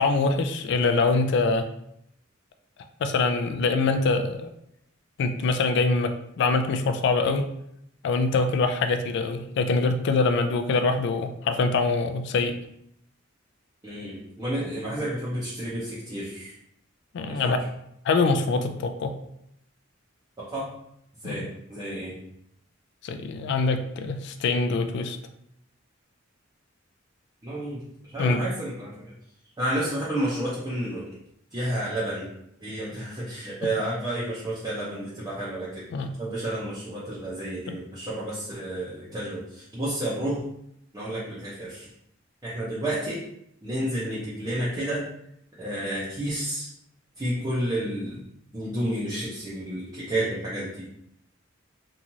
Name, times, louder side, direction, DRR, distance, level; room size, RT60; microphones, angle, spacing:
voice 1, 0.0-1.7 3.0-4.5 5.2-7.5 8.0-12.6 17.1-17.6 18.0-19.2 21.2-21.5 23.0-25.2 28.2-28.4 35.9-36.1 37.7-37.8, left 3 dB, 60° left, 8 dB, 0.3 m, -24 dB
voice 2, 13.8-16.5 17.2-17.5 20.4-20.7 21.2-22.2 27.4-29.1 29.6-31.1 31.5-32.3 32.6-35.9 36.2-40.4 40.9-41.9 42.4-43.2 43.6-45.1 45.6-46.7 47.2-48.2 48.5-50.9, right 1 dB, 20° right, -9 dB, 0.6 m, -31 dB
3.0 x 2.4 x 2.6 m, 0.77 s
head